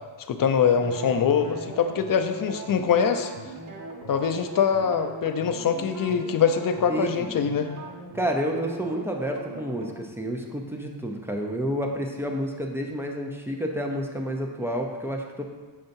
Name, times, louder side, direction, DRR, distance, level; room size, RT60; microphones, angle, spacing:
voice 1, 0.3-3.3 4.1-7.7, left 7 dB, 50° left, 7 dB, 0.6 m, -23 dB
sound 1, 0.7-9.9, right 2 dB, 45° right, 1.4 m, -40 dB
voice 2, 6.9-7.3 8.1-15.4, equal, 5° right, 2 dB, 0.7 m, -29 dB
6.6 x 5.5 x 2.6 m, 1.4 s
cardioid pair, 80°, 44 cm